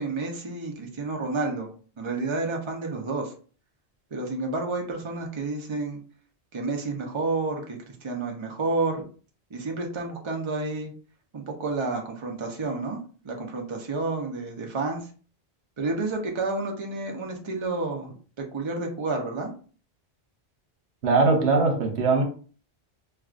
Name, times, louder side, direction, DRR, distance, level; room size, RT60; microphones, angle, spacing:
voice 1, 0.0-3.3 4.1-6.0 6.5-9.0 9.5-10.9 11.3-13.0 13.2-15.0 15.8-18.1 18.5-19.5, right 3 dB, 30° right, 0.6 m, -30 dB
voice 2, 21.0-22.2, right 3 dB, 85° right, 1.1 m, -21 dB
4.5 x 2.3 x 2.4 m
omnidirectional pair, 1.1 m